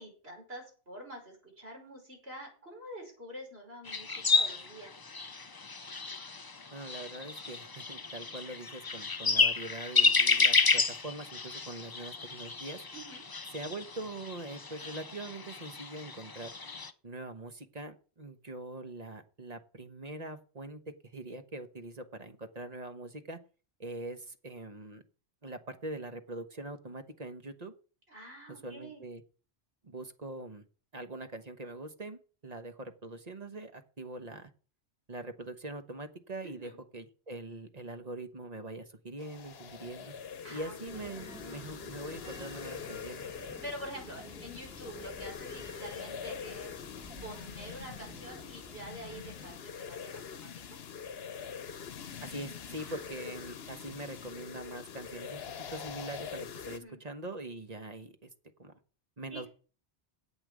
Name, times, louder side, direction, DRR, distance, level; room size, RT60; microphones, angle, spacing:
voice 1, 0.0-4.9 12.9-13.2 28.1-29.0 36.4-36.8 40.4-41.1 43.6-46.8 47.2-50.5 52.8-53.0 56.6-57.0 59.3-59.5, equal, 65° right, 0 dB, 5.9 m, -46 dB
sound 1, 3.9-16.9, left 4 dB, 25° left, 0.6 m, -31 dB
voice 2, 6.7-12.8 13.5-16.5 17.0-23.4 23.8-25.0 25.4-27.7 28.6-29.2 29.8-30.6 30.9-34.5 35.1-40.1 40.5-43.2 52.2-58.3 58.6-58.7 59.2-59.5, right 2 dB, 40° right, 8 dB, 1.3 m, -43 dB
sound 2, 39.2-56.8, left 7 dB, 65° left, 1.0 m, -44 dB
sound 3, 40.9-49.6, equal, 5° right, 1.4 m, -51 dB
8.7 x 8.4 x 7.6 m, 0.38 s
omnidirectional pair, 1.1 m